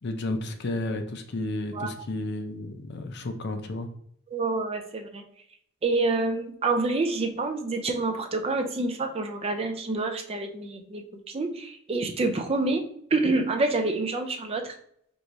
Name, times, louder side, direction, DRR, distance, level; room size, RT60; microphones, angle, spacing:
voice 1, 0.0-3.9, left 2 dB, 50° left, 6 dB, 0.5 m, -32 dB
voice 2, 4.3-5.2 5.8-12.8 13.1-14.7, right 3 dB, 25° right, 5 dB, 0.4 m, -27 dB
4.6 x 3.0 x 2.6 m, 0.68 s
head